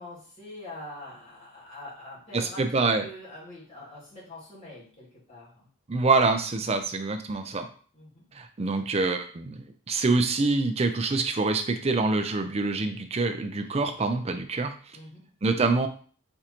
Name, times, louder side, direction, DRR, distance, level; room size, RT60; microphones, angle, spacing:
voice 1, 0.0-5.7 7.9-8.2 14.9-15.3, left 1 dB, 30° left, -8 dB, 2.4 m, -44 dB
voice 2, 2.3-3.1 5.9-7.7 8.3-14.7 15.4-15.9, right 3 dB, 30° right, 7 dB, 0.5 m, -25 dB
4.5 x 3.7 x 2.9 m, 0.43 s
head